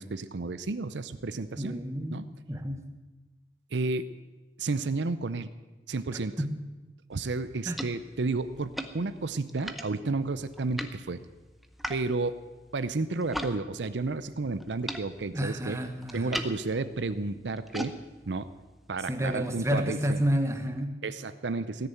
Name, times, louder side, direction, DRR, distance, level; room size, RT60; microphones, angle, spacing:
voice 1, 0.0-1.8 2.1-2.3 3.7-4.1 4.6-5.5 5.9-6.4 7.1-11.2 11.9-12.4 12.7-15.8 16.1-18.0 18.3-18.5 18.9-20.2 21.0-21.9, right 3 dB, 90° right, 13 dB, 0.7 m, -32 dB
voice 2, 1.6-2.8 6.4-6.6 7.7-7.8 15.3-16.4 19.1-21.0, equal, 15° right, 7 dB, 1.1 m, -30 dB
sound 1, 7.1-13.6 13.8-19.7, equal, ahead, 0.7 m, -42 dB
18.0 x 6.9 x 9.2 m, 1.2 s
head